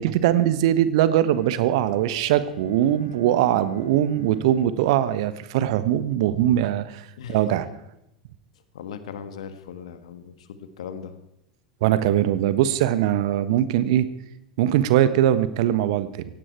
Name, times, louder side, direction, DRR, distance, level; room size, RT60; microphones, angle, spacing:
voice 1, 0.0-7.0 7.3-7.6 11.8-14.1 14.6-16.2, right 12 dB, 55° right, 14 dB, 1.2 m, -21 dB
Bowed string instrument, 0.9-6.5, left 1 dB, 85° left, 6.7 m, -46 dB
voice 2, 8.7-11.2, left 7 dB, 65° left, 10 dB, 1.7 m, -38 dB
17.0 x 17.0 x 4.6 m, 0.85 s
figure-of-eight pair, 85°, 4 cm